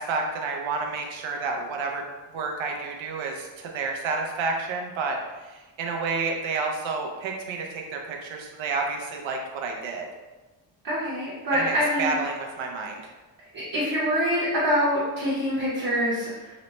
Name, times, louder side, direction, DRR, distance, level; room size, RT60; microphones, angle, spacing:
voice 1, 0.0-2.0 2.3-5.2 5.5-10.1 11.5-13.1, right 4 dB, 90° right, 2 dB, 0.7 m, -30 dB
voice 2, 10.8-12.1 13.5-16.6, equal, 45° right, -10 dB, 0.9 m, -25 dB
4.0 x 2.1 x 2.9 m, 1.2 s
wide cardioid pair, 165°, 45 cm